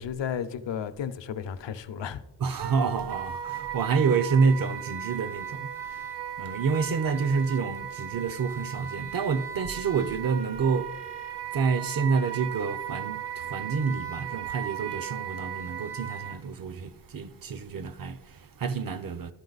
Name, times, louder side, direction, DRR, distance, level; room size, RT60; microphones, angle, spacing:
voice 1, 0.0-2.2, left 8 dB, 80° left, 0.7 m, -33 dB
voice 2, 2.4-11.0 11.5-19.3, right 5 dB, 50° right, 0.6 m, -28 dB
Wind instrument woodwind instrument, 2.6-16.4, right 9 dB, 65° right, 1.0 m, -36 dB
12.0 x 5.3 x 4.0 m
wide cardioid pair, 100°, 43 cm